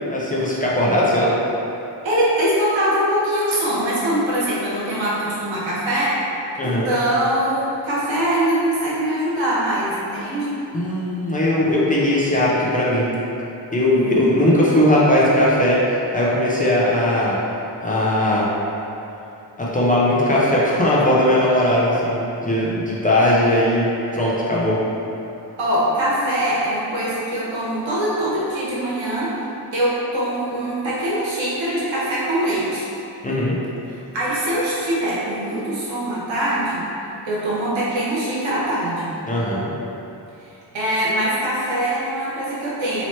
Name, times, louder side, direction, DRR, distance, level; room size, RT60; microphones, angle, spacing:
voice 1, 0.1-1.3 6.6-6.9 10.7-13.1 13.7-17.4 17.8-18.5 19.6-23.8 24.1-24.8 33.2-33.6 39.2-39.7, left 1 dB, 20° left, -7 dB, 0.5 m, -19 dB
voice 2, 2.0-6.2 6.6-10.5 13.9-14.3 25.6-29.4 29.7-32.8 33.9-36.8 37.2-39.2 40.7-43.1, right 1 dB, 90° right, -8 dB, 1.2 m, -22 dB
3.0 x 2.9 x 4.3 m, 2.9 s
wide cardioid pair, 150°, 44 cm